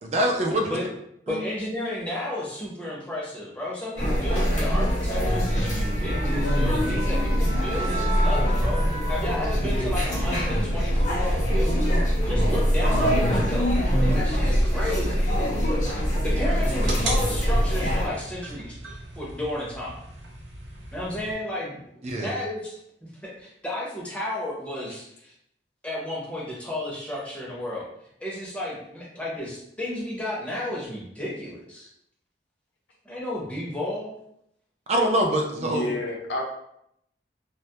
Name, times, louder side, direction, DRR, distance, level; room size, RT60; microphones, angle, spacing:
voice 1, 0.0-0.8 1.3-1.4 14.1-14.2 22.0-22.3 34.9-35.9, right 1 dB, 35° right, 2 dB, 0.4 m, -24 dB
voice 2, 1.3-13.7 14.0-15.3 16.2-20.0 20.9-22.8 23.2-25.3 25.8-27.9 28.2-31.9 33.0-34.1, left 1 dB, 5° left, -6 dB, 0.6 m, -33 dB
sound 1, 4.0-18.1, equal, 45° left, 0.7 m, -23 dB
sound 2, 5.4-10.0 10.3-10.6, equal, 60° right, 0.9 m, -36 dB
sound 3, 14.3-21.3, right 2 dB, 90° right, 0.6 m, -38 dB
voice 3, 35.6-36.4, left 1 dB, 80° left, 0 dB, 0.6 m, -30 dB
2.2 x 2.0 x 2.7 m, 0.75 s
head